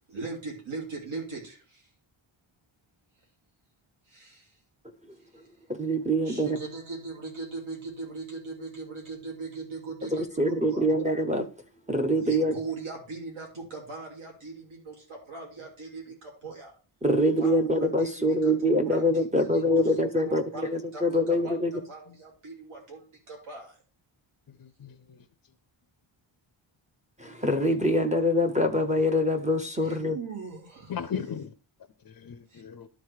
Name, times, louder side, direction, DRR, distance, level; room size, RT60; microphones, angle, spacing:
voice 1, 0.1-1.9 4.1-4.6 5.3-5.4 6.2-10.9 12.2-16.7 17.4-23.8 29.8-31.0 32.5-32.6, right 3 dB, 75° right, 3.1 m, -40 dB
voice 2, 5.7-6.6 10.1-11.5 11.9-12.5 17.0-20.4 21.0-21.7 27.2-30.2, equal, 15° right, 0.6 m, -24 dB
voice 3, 24.6-25.2 30.9-31.5 32.1-32.9, left 7 dB, 45° left, 0.5 m, -36 dB
11.5 x 3.9 x 4.8 m
wide cardioid pair, 175°, 49 cm